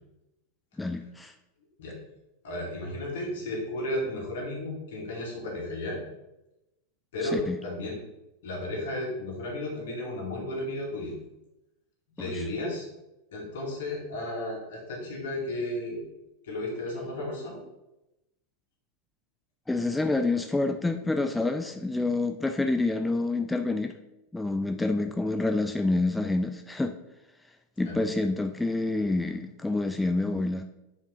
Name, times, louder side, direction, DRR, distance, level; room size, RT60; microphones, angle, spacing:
voice 1, 0.8-1.3 7.3-7.6 12.2-12.3 19.7-24.0 24.3-26.9 27.8-30.6, left 2 dB, 10° left, 6 dB, 0.4 m, -27 dB
voice 2, 2.4-6.0 7.1-8.0 8.4-11.1 12.2-12.9 13.3-16.0 16.4-17.6 27.8-28.0, left 1 dB, 70° left, -2 dB, 2.3 m, -33 dB
5.4 x 4.7 x 3.9 m, 0.93 s
hypercardioid pair, 100°, 0 cm